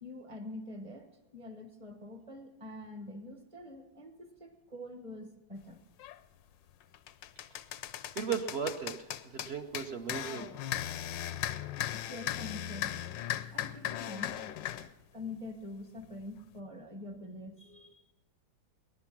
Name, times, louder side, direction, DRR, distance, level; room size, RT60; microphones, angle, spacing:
voice 1, 0.0-5.8 11.9-12.9 13.5-14.4 15.1-18.0, left 2 dB, 20° right, 6 dB, 1.1 m, -45 dB
sound 1, 6.0-6.2 6.7-14.9, left 11 dB, 85° left, 1.4 m, -37 dB
voice 2, 8.2-10.5, right 6 dB, 45° right, 5 dB, 0.9 m, -36 dB
20.5 x 11.0 x 6.1 m, 1.0 s
omnidirectional pair, 1.9 m